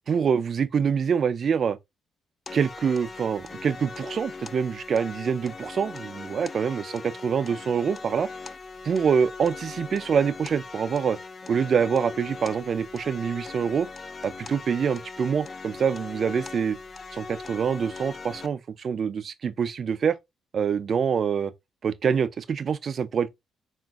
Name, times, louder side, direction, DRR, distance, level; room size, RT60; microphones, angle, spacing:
voice 1, 0.1-1.8 2.5-8.3 8.8-11.2 11.5-13.9 14.2-16.8 17.1-20.1 20.5-21.5 21.8-23.3, right 6 dB, 50° right, 0.4 m, -25 dB
sound 1, 2.5-18.5, left 4 dB, 35° left, 0.3 m, -40 dB
3.7 x 2.5 x 2.3 m
cardioid pair, 90°, 0 cm